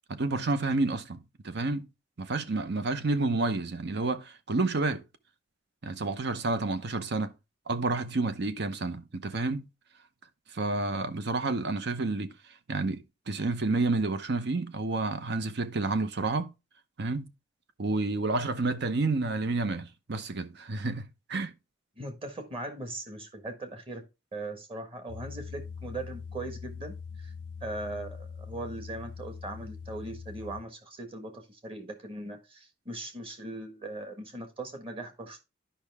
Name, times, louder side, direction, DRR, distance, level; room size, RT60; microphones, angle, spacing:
voice 1, 0.1-1.9 2.2-5.0 5.8-7.3 7.7-9.7 10.5-12.3 12.7-16.5 17.0-17.3 17.8-21.5, right 3 dB, 60° right, 0.8 m, -30 dB
voice 2, 21.9-24.0 24.3-27.3 27.6-35.4, right 2 dB, 30° right, 1.6 m, -39 dB
sound 1, 25.1-30.6, left 5 dB, 70° left, 0.4 m, -42 dB
10.5 x 5.5 x 3.5 m
head